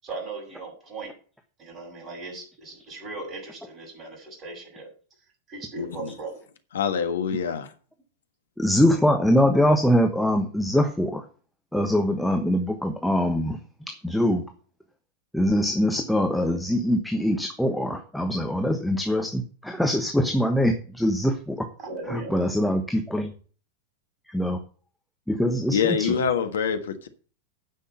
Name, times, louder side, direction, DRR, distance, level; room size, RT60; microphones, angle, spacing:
voice 1, 0.0-1.1 1.6-4.9 5.5-6.3 7.4-7.5 21.8-22.4, right 2 dB, 30° right, 6.8 m, -37 dB
voice 2, 5.8-6.1 6.7-7.7 25.7-27.1, left 7 dB, 65° left, 1.5 m, -25 dB
voice 3, 8.6-11.2 11.7-13.6 13.9-14.4 15.3-21.7 22.1-23.3 24.3-24.6 25.3-26.2, equal, ahead, 1.2 m, -23 dB
9.4 x 6.2 x 7.9 m
figure-of-eight pair, 90°, 0 cm